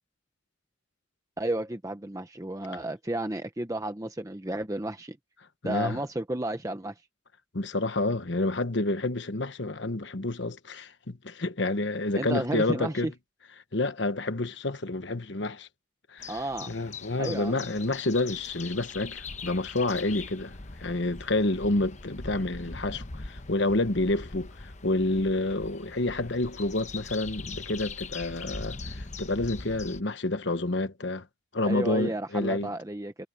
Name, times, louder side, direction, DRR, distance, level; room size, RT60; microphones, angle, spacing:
voice 1, 1.4-5.2 5.6-6.9 12.1-13.1 16.3-16.7 17.2-17.7 31.6-33.2, right 1 dB, 15° right, 0.9 m, -32 dB
voice 2, 5.6-6.0 7.5-13.1 13.7-15.7 16.1-16.3 16.7-31.3 31.5-32.7, left 2 dB, 60° left, 1.2 m, -29 dB
sound 1, 16.2-30.0, left 4 dB, 35° left, 1.0 m, -41 dB
head